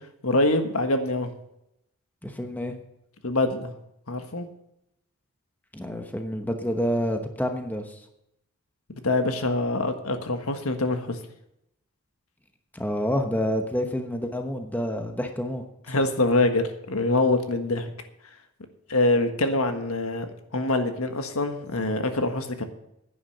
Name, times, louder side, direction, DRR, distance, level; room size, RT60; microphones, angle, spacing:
voice 1, 0.2-1.3 3.2-3.7 4.1-4.5 9.0-11.2 15.9-17.9 18.9-22.6, left 2 dB, 85° left, 7 dB, 1.5 m, -24 dB
voice 2, 2.2-2.7 5.7-8.0 12.7-15.6, equal, 10° left, 5 dB, 1.0 m, -28 dB
10.5 x 9.5 x 6.6 m, 0.81 s
head